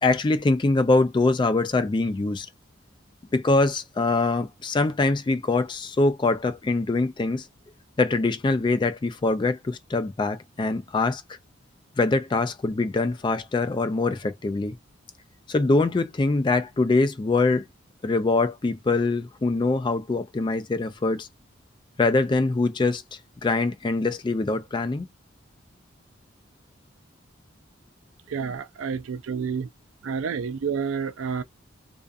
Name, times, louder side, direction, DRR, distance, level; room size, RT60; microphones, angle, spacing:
voice 1, 0.0-2.5 3.3-7.5 8.0-11.2 12.0-14.7 15.5-17.6 18.0-21.3 22.0-23.0 23.4-25.1, left 3 dB, 25° left, 0.3 m, -23 dB
voice 2, 28.3-29.7 30.0-31.4, right 6 dB, 90° right, 0.4 m, -29 dB
2.4 x 2.4 x 2.3 m
head